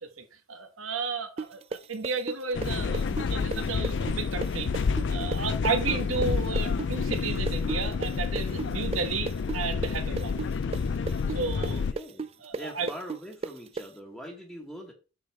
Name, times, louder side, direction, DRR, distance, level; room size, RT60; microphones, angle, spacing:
voice 1, 0.0-4.7 5.1-10.4 11.3-11.8 12.4-12.9, right 4 dB, 90° right, 1.5 m, -33 dB
sound 1, 1.4-9.0 9.3-13.9, right 4 dB, 30° right, 0.4 m, -34 dB
sound 2, 2.5-11.9, left 5 dB, 60° left, 0.4 m, -29 dB
voice 2, 11.7-14.9, equal, ahead, 1.3 m, -43 dB
7.4 x 6.6 x 3.5 m
head